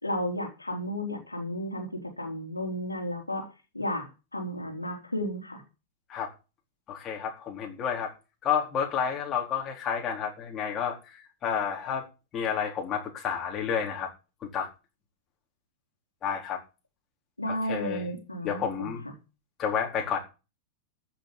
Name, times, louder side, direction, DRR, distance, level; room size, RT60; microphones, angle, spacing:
voice 1, 0.0-3.5 3.7-5.6 17.4-19.1, equal, 85° left, 1 dB, 3.8 m, -33 dB
voice 2, 6.9-8.1 8.4-12.0 12.3-14.1 14.4-14.7 16.2-16.6 17.5-18.1 18.4-19.0 19.6-20.2, left 7 dB, 30° left, 1 dB, 4.1 m, -30 dB
14.0 x 6.9 x 7.4 m, 0.31 s
figure-of-eight pair, 90°, 0 cm